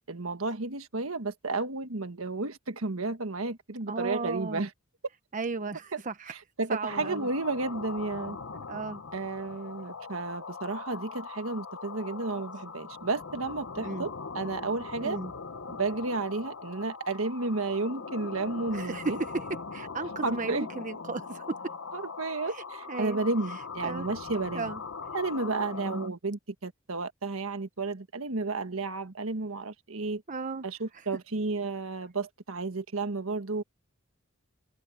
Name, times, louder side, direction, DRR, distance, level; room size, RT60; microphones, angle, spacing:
voice 1, 0.0-4.7 5.9-6.0 6.3-8.4 9.1-15.2 15.7-19.2 20.2-20.7 21.9-24.7 25.1-30.2 30.6-33.6, right 3 dB, 90° right, 1.5 m, -32 dB
voice 2, 3.9-4.7 5.3-6.4 6.7-7.3 8.5-9.0 13.8-14.1 15.0-15.3 18.7-21.6 22.5-22.6 22.9-23.2 23.8-24.1 24.5-24.8 25.7-26.1 30.3-30.7, right 3 dB, 40° right, 1.1 m, -35 dB
sound 1, 6.9-26.1, left 5 dB, 80° left, 1.0 m, -41 dB
head